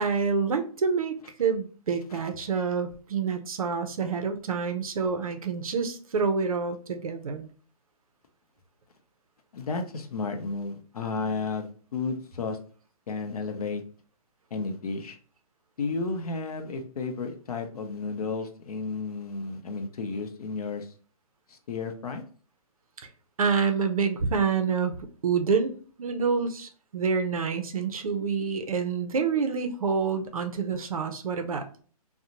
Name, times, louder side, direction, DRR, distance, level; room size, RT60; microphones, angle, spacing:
voice 1, 0.0-7.5 23.0-23.1 23.4-24.9 25.2-31.8, right 5 dB, 65° right, 7 dB, 0.5 m, -27 dB
voice 2, 9.5-12.6 13.1-13.8 14.5-15.2 15.8-20.9 21.5-22.2, left 4 dB, 75° left, 5 dB, 0.6 m, -32 dB
2.5 x 2.0 x 2.8 m, 0.42 s
hypercardioid pair, 180°, 19 cm